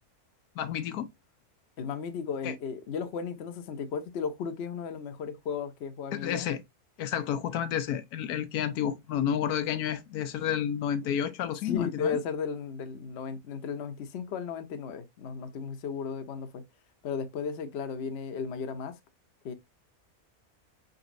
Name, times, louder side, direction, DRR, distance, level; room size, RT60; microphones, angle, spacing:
voice 1, 0.6-1.1 2.4-2.5 6.1-6.6 7.0-12.2, left 9 dB, 80° left, 1.1 m, -30 dB
voice 2, 1.8-6.5 11.6-16.6 17.0-19.0 19.4-19.5, left 6 dB, 55° left, 0.9 m, -35 dB
5.2 x 3.9 x 2.5 m
omnidirectional pair, 1.6 m